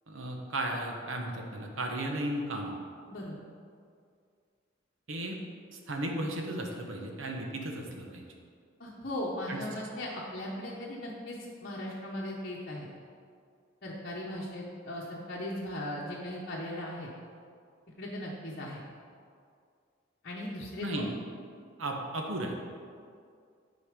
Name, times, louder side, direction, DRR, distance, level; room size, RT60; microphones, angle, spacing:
voice 1, 0.1-2.7 5.1-5.4 5.9-8.3 9.5-9.6 20.8-21.1 21.8-22.6, right 1 dB, 90° right, 2 dB, 1.1 m, -35 dB
voice 2, 8.8-12.9 13.8-17.1 18.0-18.8 20.2-21.1, left 1 dB, 50° left, -6 dB, 1.0 m, -38 dB
10.0 x 4.2 x 5.1 m, 2.2 s
head